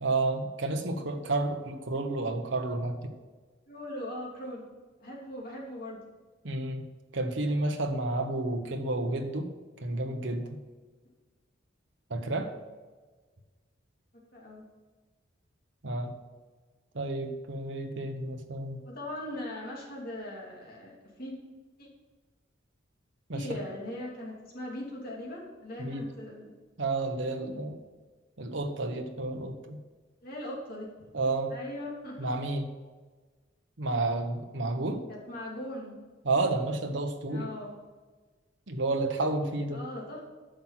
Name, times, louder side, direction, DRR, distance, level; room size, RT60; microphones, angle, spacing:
voice 1, 0.0-3.1 6.4-6.8 7.1-9.5 9.8-10.6 12.1-12.5 15.8-16.1 16.9-18.8 23.3-23.6 25.8-26.1 26.8-27.8 28.4-29.8 31.1-31.5 32.2-32.7 33.8-35.0 36.2-37.5 38.7-39.8, right 2 dB, 65° right, 5 dB, 1.1 m, -31 dB
voice 2, 3.7-4.7 5.0-6.0 14.3-14.6 18.8-21.3 21.8-21.9 23.3-26.5 30.2-31.1 31.5-32.3 35.1-35.9 37.3-37.7 39.7-40.2, left 1 dB, 45° left, -3 dB, 2.8 m, -40 dB
10.0 x 6.2 x 5.8 m, 1.3 s
head